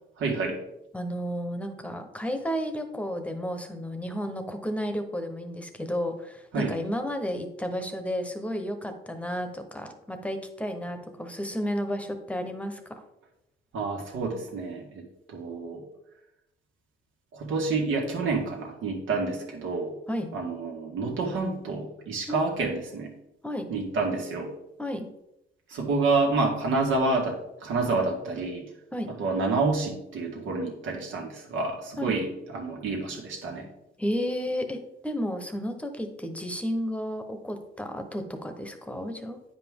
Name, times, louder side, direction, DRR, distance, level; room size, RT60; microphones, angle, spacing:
voice 1, 0.2-0.6 6.5-6.7 13.7-15.0 15.3-15.8 17.3-19.9 20.3-23.1 23.7-24.5 25.7-28.7 29.2-33.7, right 3 dB, 80° right, 0 dB, 1.9 m, -28 dB
voice 2, 0.9-13.0 20.1-20.3 22.3-22.4 23.4-23.7 24.8-25.1 28.9-29.1 32.0-32.1 34.0-39.4, equal, 5° left, 6 dB, 1.1 m, -32 dB
9.1 x 5.1 x 3.7 m, 0.86 s
cardioid pair, 90°, 20 cm